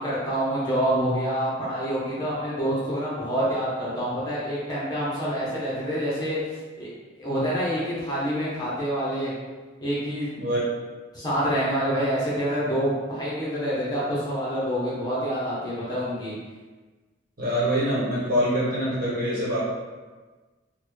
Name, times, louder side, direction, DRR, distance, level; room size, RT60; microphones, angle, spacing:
voice 1, 0.0-6.4 6.8-6.9 7.2-9.3 9.8-10.5 11.1-16.4, equal, 20° left, -9 dB, 0.8 m, -27 dB
voice 2, 17.4-19.6, equal, 45° right, -8 dB, 1.3 m, -24 dB
3.9 x 2.2 x 3.1 m, 1.3 s
head